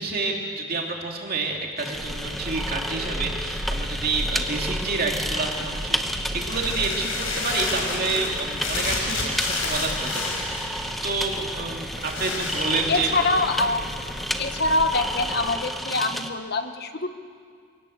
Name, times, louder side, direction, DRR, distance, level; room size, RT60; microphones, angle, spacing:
voice 1, 0.0-13.3, right 3 dB, 45° right, 1 dB, 2.9 m, -29 dB
sound 1, 1.8-16.3, equal, ahead, 1.0 m, -32 dB
sound 2, 1.9-15.5, left 2 dB, 65° left, 4.8 m, -32 dB
voice 2, 12.9-13.8 14.4-17.1, left 2 dB, 45° left, 7 dB, 1.3 m, -24 dB
25.0 x 18.0 x 8.2 m, 2.1 s
head